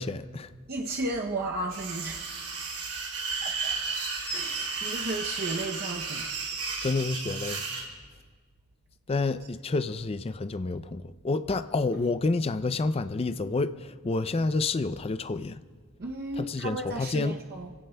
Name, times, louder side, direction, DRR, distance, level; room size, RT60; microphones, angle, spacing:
voice 1, 0.0-0.5 6.8-7.6 9.1-15.6 16.4-17.4, left 3 dB, 25° left, 0.4 m, -29 dB
voice 2, 0.7-2.8 3.4-3.8 4.3-6.3 16.0-17.7, right 2 dB, 45° right, 0.7 m, -34 dB
sound 1, 1.7-7.8, right 4 dB, 90° right, 3.2 m, -33 dB
25.0 x 17.0 x 2.2 m
head